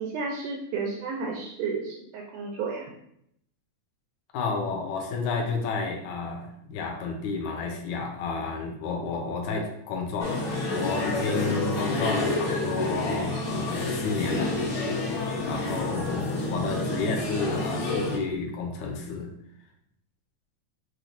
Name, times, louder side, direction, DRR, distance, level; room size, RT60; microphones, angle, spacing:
voice 1, 0.0-3.0, right 4 dB, 85° right, 0 dB, 1.5 m, -32 dB
voice 2, 4.3-10.4 10.7-14.6 15.4-19.3, left 4 dB, 75° left, 2 dB, 2.0 m, -31 dB
sound 1, 10.2-18.2, left 2 dB, 60° left, 1.4 m, -29 dB
6.2 x 3.2 x 2.6 m, 0.73 s
omnidirectional pair, 3.7 m